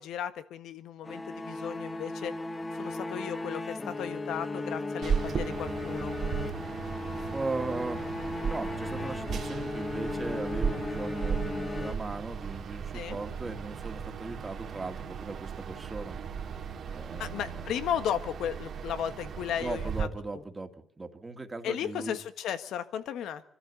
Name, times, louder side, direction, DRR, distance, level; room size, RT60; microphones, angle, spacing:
voice 1, 0.0-2.3 2.8-6.1 12.9-13.2 17.2-20.1 21.6-23.5, left 9 dB, 80° left, 10 dB, 1.5 m, -35 dB
sound 1, 1.0-12.5, left 2 dB, 25° left, 1.6 m, -36 dB
sound 2, 5.0-20.0, right 7 dB, 60° right, 2.2 m, -36 dB
voice 2, 7.3-8.1 8.4-16.2 16.9-17.7 19.6-20.7 21.0-22.2, right 3 dB, 20° right, 6 dB, 2.1 m, -38 dB
25.0 x 13.0 x 8.2 m, 0.72 s
cardioid pair, 90°, 0 cm